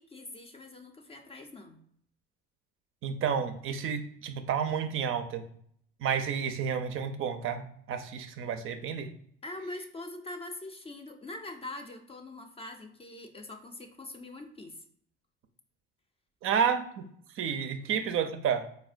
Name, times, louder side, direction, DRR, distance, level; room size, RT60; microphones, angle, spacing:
voice 1, 0.0-1.8 9.4-14.8, left 2 dB, 20° left, 4 dB, 0.5 m, -43 dB
voice 2, 3.0-5.5 6.0-9.1 16.4-17.1 17.3-18.7, right 7 dB, 45° right, 8 dB, 0.5 m, -30 dB
4.2 x 2.0 x 2.5 m, 0.65 s
hypercardioid pair, 75°, 30 cm